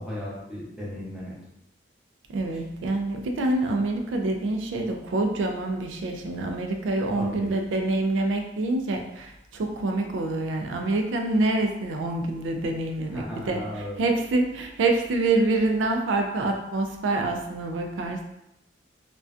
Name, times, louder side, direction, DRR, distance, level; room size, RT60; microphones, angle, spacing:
voice 1, 0.0-1.4 7.2-7.5 13.1-14.0, left 1 dB, 5° right, -7 dB, 0.6 m, -35 dB
voice 2, 2.3-18.2, right 2 dB, 85° right, 3 dB, 0.3 m, -26 dB
2.4 x 2.2 x 2.3 m, 0.86 s
head